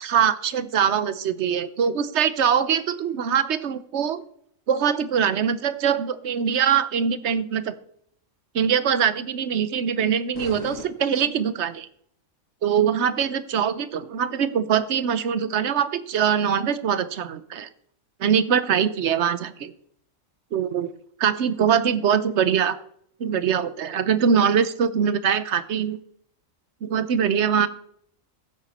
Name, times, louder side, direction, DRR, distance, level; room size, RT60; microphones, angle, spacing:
voice 1, 0.0-4.2 4.7-7.7 8.5-11.9 12.6-17.7 18.2-19.7 20.5-20.9 21.2-22.8 23.2-26.0 26.8-27.7, right 7 dB, 60° right, 14 dB, 1.0 m, -23 dB
sound 1, 10.3-11.8, left 5 dB, 75° left, 2.0 m, -41 dB
15.5 x 7.9 x 4.2 m, 0.68 s
omnidirectional pair, 1.4 m